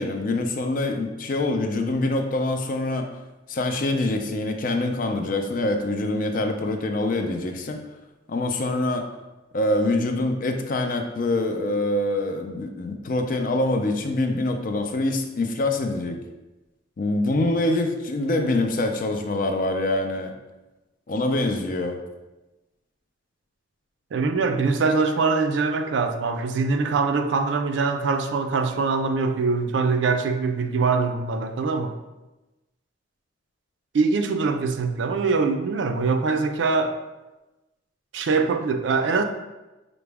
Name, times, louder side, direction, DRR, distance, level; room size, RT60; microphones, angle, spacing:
voice 1, 0.0-3.1 3.5-7.8 8.3-9.1 9.5-16.2 17.0-20.3 21.1-22.0, left 2 dB, 45° left, 5 dB, 0.4 m, -25 dB
voice 2, 24.1-32.0 33.9-37.0 38.1-39.2, right 4 dB, 70° right, 7 dB, 0.4 m, -23 dB
5.8 x 2.0 x 3.3 m, 1.1 s
head